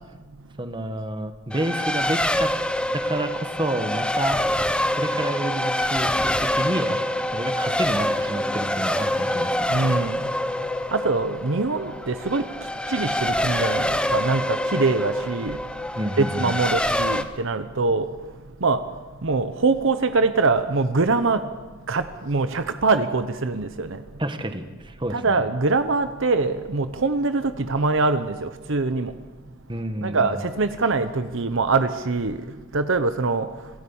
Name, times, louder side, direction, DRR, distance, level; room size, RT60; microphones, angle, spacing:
voice 1, 0.6-2.5 2.9-4.4 4.9-7.0 7.3-9.7 16.0-16.6 24.2-25.4 29.7-30.4, right 1 dB, 25° right, 7 dB, 1.6 m, -29 dB
Race car auto racing, 1.5-17.2, left 1 dB, 5° left, 0.9 m, -25 dB
voice 2, 9.7-10.2 10.9-12.4 12.9-15.6 16.2-18.1 18.6-18.8 19.2-21.4 21.9-24.0 25.1-29.1 30.0-32.4 32.7-33.5, right 3 dB, 65° right, 10 dB, 0.9 m, -23 dB
26.5 x 15.5 x 7.2 m, 1.3 s
head